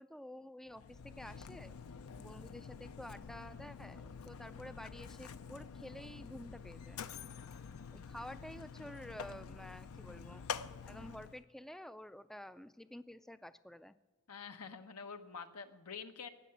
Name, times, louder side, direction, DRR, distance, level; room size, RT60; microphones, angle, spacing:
voice 1, 0.0-1.7 2.2-7.0 7.9-10.5 10.9-14.0, left 1 dB, ahead, 13 dB, 0.3 m, -50 dB
Mechanisms, 0.7-11.4, left 6 dB, 70° left, 0.5 m, -48 dB
voice 2, 14.3-16.3, left 6 dB, 85° left, 7 dB, 1.1 m, -47 dB
18.5 x 6.8 x 8.5 m, 1.3 s
head